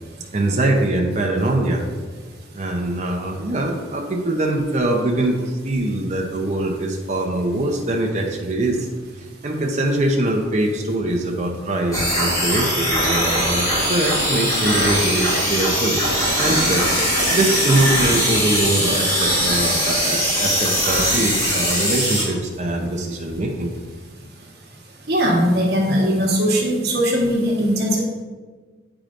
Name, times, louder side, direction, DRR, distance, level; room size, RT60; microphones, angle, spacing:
voice 1, 0.3-1.8 2.5-8.9 9.4-16.0 16.4-16.9 17.3-23.7, right 1 dB, 40° right, 0 dB, 0.7 m, -22 dB
sound 1, 11.9-22.2, equal, 20° left, 1.7 m, -20 dB
voice 2, 25.1-28.0, equal, 60° right, -2 dB, 1.3 m, -19 dB
8.8 x 4.8 x 2.6 m, 1.4 s
head